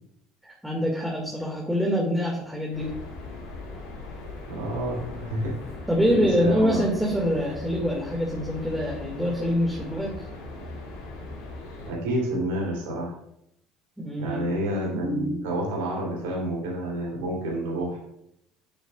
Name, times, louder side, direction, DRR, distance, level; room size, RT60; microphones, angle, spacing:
voice 1, 0.4-2.9 5.9-10.3 14.0-14.5, equal, 5° right, -2 dB, 2.2 m, -25 dB
sound 1, 2.7-11.9, left 2 dB, 85° left, 3.6 m, -39 dB
voice 2, 4.5-5.6 6.1-6.8 11.9-13.1 14.2-18.0, right 1 dB, 80° right, -3 dB, 3.5 m, -29 dB
10.0 x 7.9 x 2.5 m, 0.77 s
hypercardioid pair, 70°, 0 cm